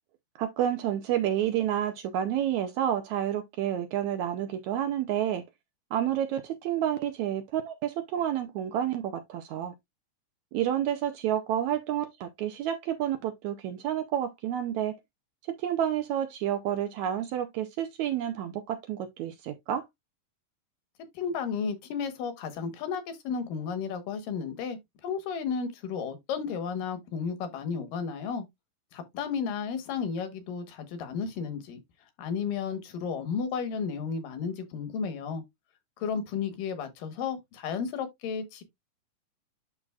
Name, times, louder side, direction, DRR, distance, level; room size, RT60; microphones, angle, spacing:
voice 1, 0.4-5.4 5.9-9.7 10.5-15.0 15.5-19.8, right 10 dB, 75° right, 1.8 m, -29 dB
voice 2, 21.1-28.4 28.9-31.8 32.2-35.4 36.0-38.6, left 6 dB, 80° left, 2.9 m, -33 dB
11.5 x 3.8 x 2.4 m
omnidirectional pair, 3.9 m